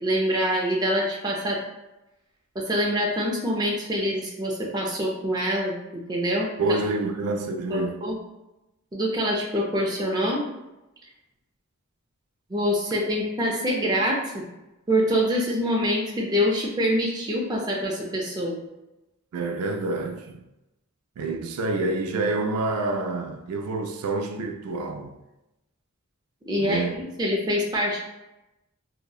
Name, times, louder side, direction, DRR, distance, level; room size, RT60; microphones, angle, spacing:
voice 1, 0.0-1.6 2.6-6.8 7.7-8.2 8.9-10.5 12.5-14.4 14.9-18.6 26.4-26.8 27.2-28.0, equal, 20° right, 0.4 m, -25 dB
voice 2, 6.6-8.0 19.3-20.4 21.2-25.1 26.6-27.0, right 2 dB, 90° right, 0.3 m, -27 dB
2.7 x 2.0 x 2.3 m
head